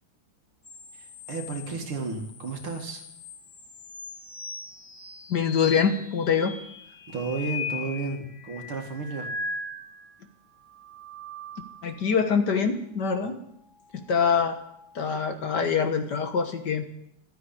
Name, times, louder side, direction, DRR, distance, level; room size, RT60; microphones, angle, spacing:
sound 1, 0.6-10.2 10.7-12.0 13.8-15.0, left 4 dB, 80° left, 4.4 m, -40 dB
voice 1, 0.9-3.0 7.1-9.3, right 4 dB, 75° right, 3 dB, 2.8 m, -33 dB
voice 2, 5.3-6.5 11.8-13.4 13.9-14.6 14.9-17.1, left 6 dB, 55° left, 7 dB, 1.7 m, -25 dB
12.5 x 9.4 x 9.9 m, 0.76 s
omnidirectional pair, 2.4 m